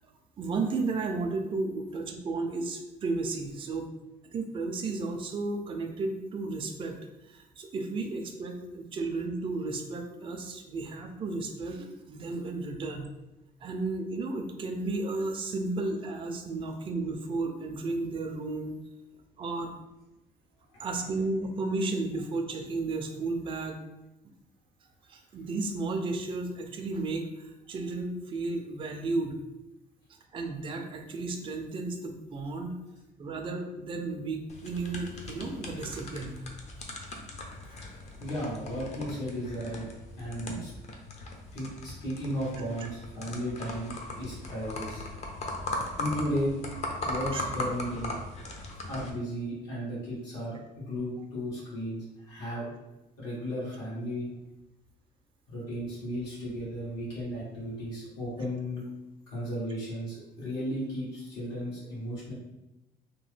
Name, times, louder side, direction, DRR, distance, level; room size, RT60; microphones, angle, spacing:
voice 1, 0.4-3.9 4.3-13.1 13.6-18.8 19.4-19.7 20.8-23.8 25.1-29.4 30.3-32.8 33.2-36.4 47.3-47.4, right 3 dB, 30° right, 4 dB, 0.4 m, -33 dB
sound 1, 34.5-49.1, left 2 dB, 40° left, 0.6 m, -39 dB
voice 2, 38.2-39.8 40.2-40.7 41.5-45.0 46.0-46.6 47.0-48.2 48.9-52.7 53.2-54.3 55.5-58.8 59.3-62.3, equal, 80° left, -8 dB, 1.5 m, -35 dB
2.9 x 2.1 x 3.2 m, 0.99 s
cardioid pair, 110°, 17 cm